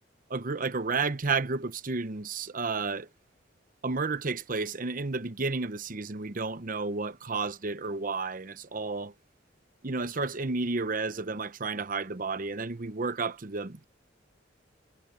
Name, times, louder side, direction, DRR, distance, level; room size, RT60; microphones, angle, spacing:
voice 1, 0.3-3.1 3.8-9.1 9.8-13.8, right 4 dB, 45° right, 0.8 m, -31 dB
head